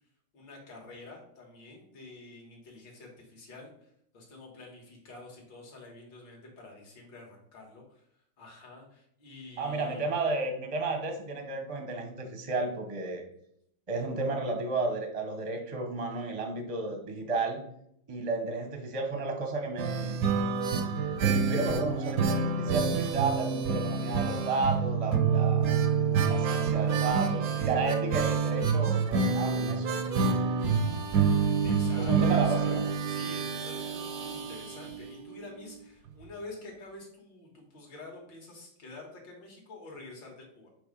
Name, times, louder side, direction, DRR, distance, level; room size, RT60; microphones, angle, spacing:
voice 1, 0.3-8.0 8.4-10.1 31.6-40.7, left 2 dB, 60° left, -1 dB, 2.5 m, -48 dB
voice 2, 9.6-13.2 13.9-17.6 18.1-20.2 21.2-25.8 26.3-30.1 32.0-32.9, right 3 dB, 30° right, 4 dB, 0.6 m, -32 dB
sound 1, 19.8-35.4 35.7-35.8 36.1-36.2, right 5 dB, 65° right, 0.9 m, -28 dB
7.4 x 3.2 x 5.3 m, 0.71 s
omnidirectional pair, 2.3 m